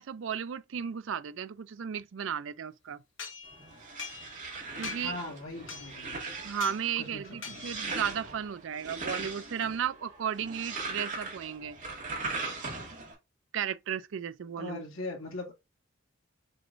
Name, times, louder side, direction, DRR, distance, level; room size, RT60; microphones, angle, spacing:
voice 1, 0.0-3.0 4.8-5.2 6.4-11.8 13.5-14.8, right 8 dB, 65° right, 0.4 m, -34 dB
sound 1, 3.2-4.5 4.8-5.2 5.7-6.1 6.6-6.8 7.4-7.9, left 5 dB, 65° left, 1.3 m, -42 dB
sound 2, 3.5-13.1, right 3 dB, 40° right, 1.7 m, -40 dB
voice 2, 5.0-6.3 7.0-7.7 14.6-15.5, left 2 dB, 90° left, 1.8 m, -40 dB
6.4 x 3.0 x 2.5 m
head